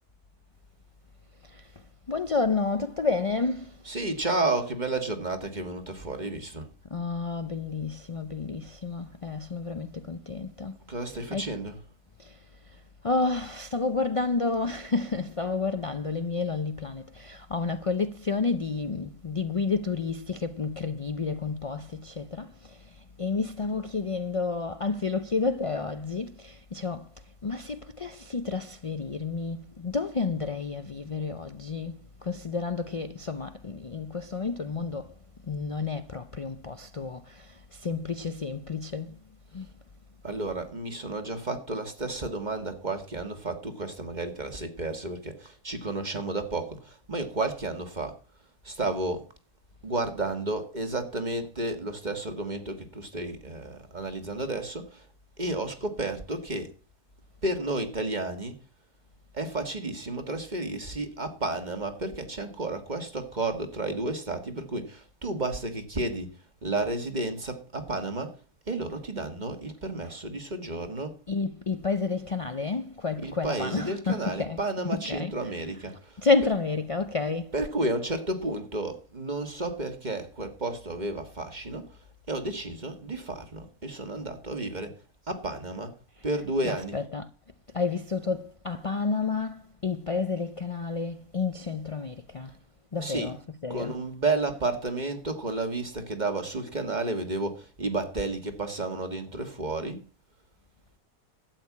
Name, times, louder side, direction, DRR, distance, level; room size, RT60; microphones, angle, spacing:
voice 1, 1.4-3.9 6.9-11.6 12.2-35.2 35.4-39.2 39.5-39.7 70.0-70.2 71.3-77.6 86.2-87.3 87.7-92.6 92.9-94.0, left 4 dB, 60° left, 0.3 m, -31 dB
voice 2, 3.8-6.7 10.9-11.8 40.2-48.2 48.6-49.3 49.8-55.0 55.4-56.7 57.4-58.6 59.3-66.3 66.6-68.4 68.7-71.1 73.2-76.2 77.5-82.0 82.3-85.0 85.3-85.9 86.2-87.0 93.0-93.3 93.7-100.0, right 2 dB, 30° right, 1.7 m, -32 dB
12.5 x 6.6 x 8.4 m
omnidirectional pair, 1.6 m